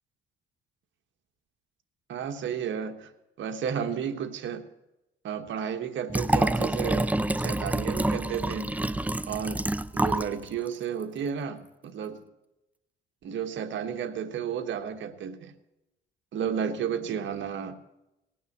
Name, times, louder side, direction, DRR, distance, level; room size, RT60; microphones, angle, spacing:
voice 1, 2.1-3.1 3.4-4.6 5.2-8.7 9.3-12.2 13.2-15.5 16.3-17.8, right 8 dB, 70° right, 8 dB, 1.3 m, -32 dB
Liquid, 6.1-10.3 10.7-10.8, right 1 dB, 5° right, 0.5 m, -27 dB
18.0 x 9.4 x 6.7 m, 0.92 s
cardioid pair, 90°, 20 cm